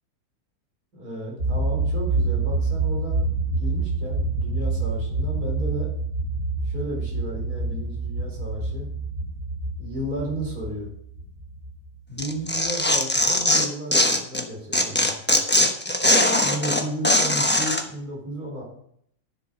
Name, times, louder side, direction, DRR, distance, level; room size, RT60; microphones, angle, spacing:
voice 1, 0.9-5.9 6.6-8.9 9.8-10.9 12.1-15.4 16.4-18.6, right 1 dB, 90° right, -3 dB, 5.0 m, -33 dB
sound 1, 1.4-12.7, right 3 dB, 60° right, 3.0 m, -27 dB
Tearing, 12.2-14.4 14.7-17.8, left 1 dB, 10° left, 0.9 m, -20 dB
10.5 x 7.8 x 5.3 m, 0.68 s
omnidirectional pair, 1.6 m